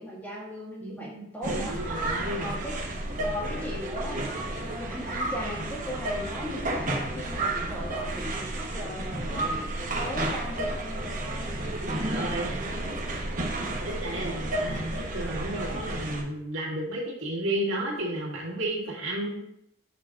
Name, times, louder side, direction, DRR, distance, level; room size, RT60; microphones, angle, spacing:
voice 1, 0.0-1.8 2.4-2.8 3.2-11.5, equal, 10° left, -5 dB, 1.7 m, -38 dB
voice 2, 0.8-2.6 11.8-12.8 13.8-19.4, right 1 dB, 90° right, -4 dB, 1.8 m, -33 dB
sound 1, 1.4-16.2, right 1 dB, 40° right, 1.0 m, -32 dB
6.7 x 5.8 x 2.5 m, 0.74 s
head